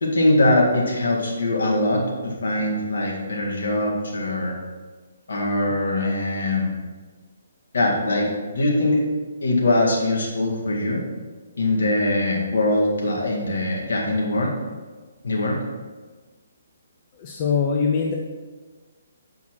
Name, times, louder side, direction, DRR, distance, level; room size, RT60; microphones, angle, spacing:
voice 1, 0.0-4.6 5.3-6.7 7.7-8.3 8.5-9.0 9.4-11.0 11.6-14.5 15.2-15.6, left 1 dB, 60° left, -2 dB, 1.8 m, -22 dB
voice 2, 17.1-18.1, left 5 dB, 30° left, 0 dB, 0.6 m, -22 dB
7.1 x 5.7 x 4.5 m, 1.4 s
figure-of-eight pair, 135°, 0 cm